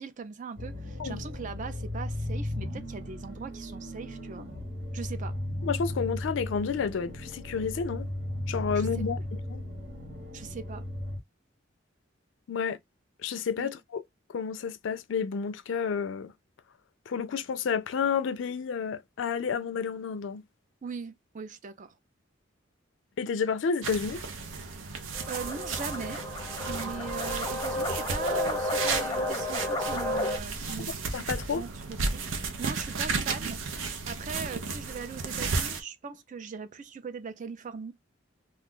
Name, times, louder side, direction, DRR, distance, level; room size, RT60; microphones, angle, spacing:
voice 1, 0.0-4.5 4.9-5.4 8.7-8.9 10.3-10.8 13.6-13.7 20.8-21.9 25.3-26.2 26.7-30.9 31.5-33.6 34.1-37.9, right 5 dB, 40° right, 0.4 m, -40 dB
sound 1, 0.6-11.2, left 1 dB, 70° right, 1.4 m, -36 dB
voice 2, 5.6-8.1 8.5-9.2 9.5-9.6 12.5-12.8 13.2-14.0 14.3-16.3 17.1-20.4 23.2-24.2 31.1-31.6, left 6 dB, 70° left, 0.4 m, -30 dB
sound 2, 23.8-35.8, right 4 dB, 85° right, 0.6 m, -34 dB
sound 3, 25.1-30.4, left 1 dB, 15° left, 0.6 m, -32 dB
2.4 x 2.3 x 3.6 m
head